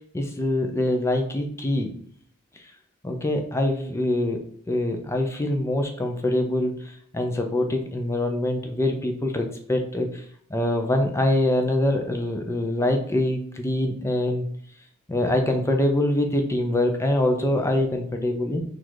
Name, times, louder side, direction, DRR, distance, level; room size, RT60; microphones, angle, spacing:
voice 1, 0.1-2.0 3.0-6.8 7.1-10.1 10.5-14.5 15.1-18.6, left 1 dB, 15° left, 3 dB, 0.5 m, -24 dB
3.9 x 2.5 x 4.6 m, 0.62 s
head